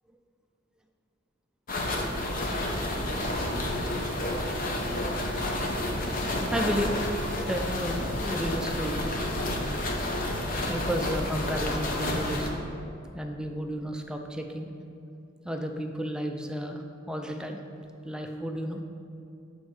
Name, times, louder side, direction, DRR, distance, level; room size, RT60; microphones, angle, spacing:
sound 1, 1.7-12.5, left 1 dB, 45° left, 0.8 m, -30 dB
voice 1, 6.5-6.9 7.5-9.0 10.7-12.7 13.1-14.7 15.4-17.6 18.0-18.8, equal, 5° right, 3 dB, 0.4 m, -32 dB
6.2 x 5.3 x 4.7 m, 2.7 s
head